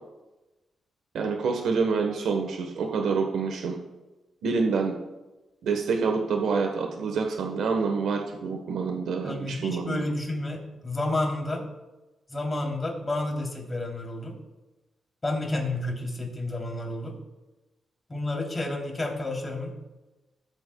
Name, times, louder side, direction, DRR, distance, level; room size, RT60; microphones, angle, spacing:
voice 1, 1.1-3.8 4.4-5.0 5.6-10.0, right 4 dB, 80° right, 2 dB, 1.2 m, -27 dB
voice 2, 9.2-11.7 12.3-14.4 15.2-17.2 18.1-19.8, left 2 dB, 25° left, -1 dB, 3.2 m, -30 dB
20.0 x 8.0 x 2.3 m, 1.1 s
cardioid pair, 75°, 0 cm